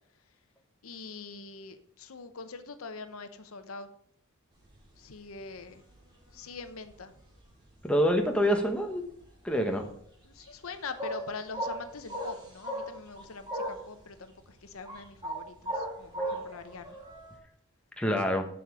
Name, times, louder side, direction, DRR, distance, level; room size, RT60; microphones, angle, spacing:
voice 1, 0.8-3.9 5.0-5.8 6.3-7.1 10.3-17.0, left 4 dB, 75° left, 9 dB, 0.8 m, -43 dB
sound 1, 4.6-5.6 5.9-7.4 7.7-9.3 9.6-13.9 14.3-17.4, right 1 dB, 20° right, 2.3 m, -37 dB
voice 2, 7.8-9.0 9.4-9.9 18.0-18.5, equal, 5° left, 3 dB, 1.0 m, -26 dB
7.6 x 7.1 x 4.8 m, 0.64 s
head